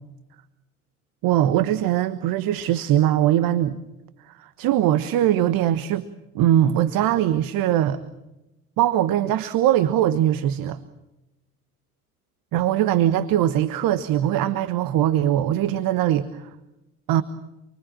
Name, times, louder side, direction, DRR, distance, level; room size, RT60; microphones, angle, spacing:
voice 1, 1.2-3.8 4.3-6.1 6.3-8.0 8.8-10.8 12.5-16.5 17.1-17.2, right 12 dB, 50° right, 14 dB, 1.3 m, -21 dB
29.0 x 23.0 x 7.5 m, 0.96 s
hypercardioid pair, 70°, 44 cm